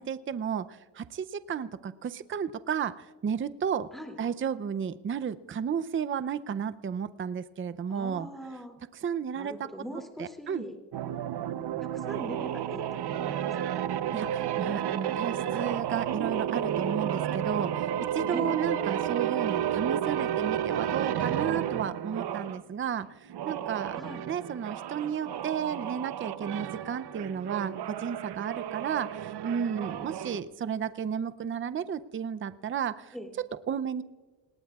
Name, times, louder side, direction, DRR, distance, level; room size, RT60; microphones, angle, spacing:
voice 1, 0.0-3.9 4.2-8.3 9.0-9.5 10.2-10.6 14.1-24.0 24.3-33.1 33.7-34.0, right 7 dB, 25° right, 13 dB, 0.6 m, -33 dB
voice 2, 7.9-8.8 9.3-10.8 11.9-13.9 18.3-18.6 23.9-24.3 33.1-33.3, equal, ahead, 2 dB, 2.7 m, -42 dB
sound 1, 10.9-22.6 23.3-30.4, right 10 dB, 60° right, 0.9 m, -32 dB
27.5 x 19.5 x 2.4 m, 1.3 s
cardioid pair, 85°, 46 cm